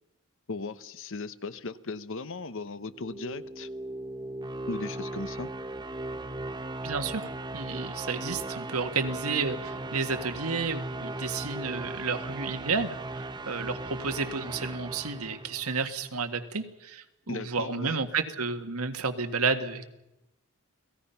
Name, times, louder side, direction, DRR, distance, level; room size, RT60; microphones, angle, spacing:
voice 1, 0.5-3.7 4.7-5.5 17.3-18.1, left 3 dB, 60° left, 14 dB, 0.9 m, -37 dB
sound 1, 2.8-16.0, right 2 dB, 20° right, 0.8 m, -37 dB
voice 2, 6.8-19.8, right 4 dB, 85° right, 7 dB, 1.8 m, -31 dB
29.5 x 18.5 x 5.8 m, 0.90 s
head